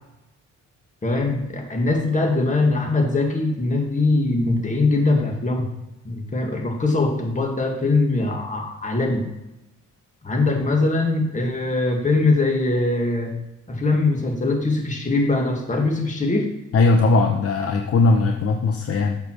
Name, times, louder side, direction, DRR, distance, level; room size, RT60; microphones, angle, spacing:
voice 1, 1.0-5.7 6.0-9.3 10.2-13.3 13.7-16.5, left 2 dB, 25° left, 1 dB, 2.0 m, -22 dB
voice 2, 16.7-19.2, left 3 dB, 50° left, 3 dB, 0.9 m, -19 dB
8.0 x 4.7 x 6.3 m, 0.95 s
cardioid pair, 90°, 30 cm